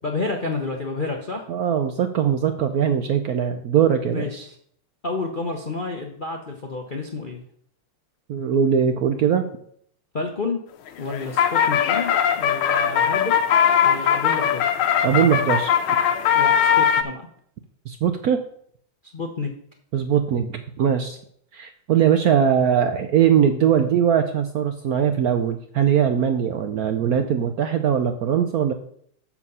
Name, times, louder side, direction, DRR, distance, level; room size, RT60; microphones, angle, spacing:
voice 1, 0.0-1.5 4.1-4.5 5.0-7.4 10.1-10.6 11.0-13.4 13.8-14.9 16.3-17.3 19.1-19.5, left 3 dB, 65° left, 2 dB, 0.5 m, -30 dB
voice 2, 1.5-4.4 8.3-9.5 15.0-15.7 17.9-18.4 19.9-21.2 21.5-28.7, right 8 dB, 80° right, 7 dB, 0.8 m, -21 dB
sound 1, 10.9-17.0, left 8 dB, 80° left, 1.6 m, -20 dB
7.2 x 7.2 x 5.5 m, 0.64 s
omnidirectional pair, 2.4 m